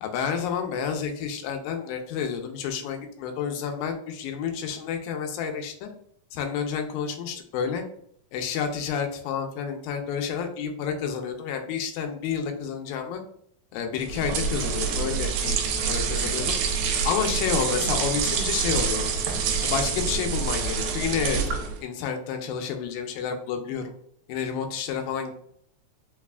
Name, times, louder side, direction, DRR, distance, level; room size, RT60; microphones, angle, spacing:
voice 1, 0.0-5.9 6.3-7.8 8.3-13.2 13.7-15.6 15.9-16.6 17.1-19.0 19.6-21.4 21.8-23.9 24.3-25.3, left 7 dB, 85° left, 4 dB, 2.2 m, -30 dB
sound 1, 14.0-21.8, right 6 dB, 85° right, 2.3 m, -26 dB
5.3 x 2.4 x 2.3 m, 0.66 s
omnidirectional pair, 4.0 m